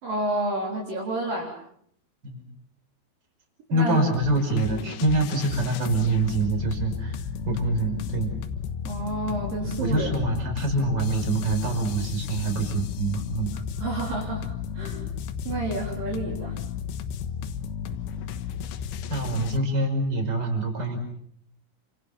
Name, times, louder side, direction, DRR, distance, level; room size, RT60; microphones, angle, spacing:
voice 1, 0.0-1.6 3.7-4.0 4.7-4.8 8.8-10.1 13.8-15.1 15.5-16.6, right 2 dB, 50° right, -2 dB, 5.2 m, -30 dB
voice 2, 3.7-7.2 7.5-8.3 9.6-13.5 17.9-18.0 19.1-21.0, right 2 dB, 20° right, 4 dB, 5.9 m, -25 dB
sound 1, 4.1-19.6, left 7 dB, 85° left, 3.8 m, -33 dB
29.5 x 27.5 x 6.0 m, 0.68 s
omnidirectional pair, 5.4 m